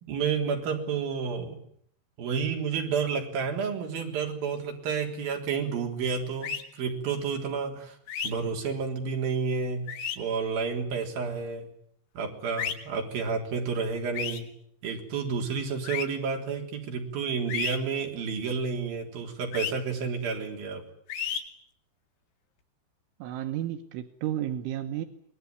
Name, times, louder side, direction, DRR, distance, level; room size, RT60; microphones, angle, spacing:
voice 1, 0.0-1.6 2.2-8.0 8.2-9.9 10.2-11.7 12.2-14.5 14.8-20.8, right 5 dB, 50° right, 2 dB, 5.3 m, -30 dB
sound 1, 6.4-6.6 8.1-8.3 9.9-10.2 12.6-12.7 14.1-14.4 15.8-16.0 17.5-17.8 19.5-19.7 21.1-21.4, left 8 dB, 80° left, 4.8 m, -31 dB
voice 2, 23.2-25.1, right 12 dB, 85° right, 6 dB, 3.7 m, -32 dB
26.0 x 20.0 x 9.4 m, 0.66 s
omnidirectional pair, 5.5 m